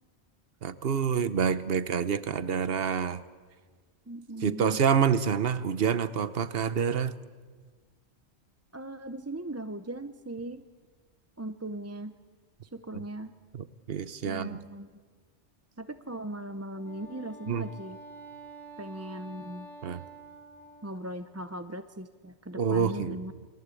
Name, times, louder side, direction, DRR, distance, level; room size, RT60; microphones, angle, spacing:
voice 1, 0.6-3.2 4.4-7.1 13.5-14.6 17.5-17.6 19.8-20.0 22.6-23.2, right 7 dB, 60° right, 13 dB, 1.2 m, -27 dB
voice 2, 4.1-4.8 8.7-10.6 11.4-12.1 12.7-13.3 14.2-14.9 15.8-18.0 18.8-19.7 20.8-23.3, right 1 dB, 15° right, 9 dB, 0.6 m, -39 dB
Wind instrument woodwind instrument, 16.6-21.3, right 2 dB, 90° right, 3.7 m, -48 dB
29.0 x 23.5 x 8.4 m, 1.5 s
omnidirectional pair, 1.1 m